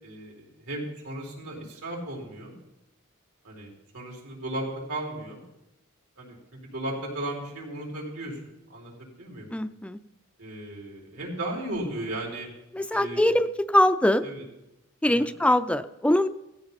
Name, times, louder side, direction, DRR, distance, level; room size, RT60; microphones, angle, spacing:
voice 1, 0.0-2.5 3.4-5.4 6.2-6.4 6.7-9.5 10.4-12.5 12.9-13.3 14.2-14.4 15.0-15.3, right 1 dB, 90° right, -2 dB, 4.7 m, -35 dB
voice 2, 9.5-10.0 12.7-14.2 15.0-16.3, left 1 dB, 5° left, 10 dB, 0.4 m, -22 dB
17.0 x 14.0 x 4.1 m, 0.91 s
head